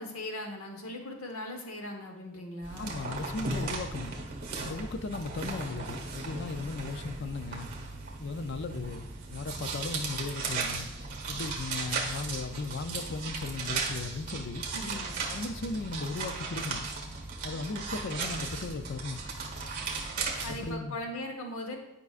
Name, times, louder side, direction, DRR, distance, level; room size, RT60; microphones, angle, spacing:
voice 1, 0.0-3.0 14.7-15.1 20.4-21.8, left 1 dB, 85° left, 3 dB, 1.0 m, -39 dB
sound 1, 2.6-20.7, right 4 dB, 40° right, 1.3 m, -36 dB
voice 2, 2.8-4.2 4.6-7.7 8.2-10.9 11.3-14.7 15.3-16.9 17.4-19.2 20.5-21.0, left 3 dB, 55° left, 10 dB, 0.5 m, -37 dB
10.5 x 5.4 x 2.5 m, 0.92 s
head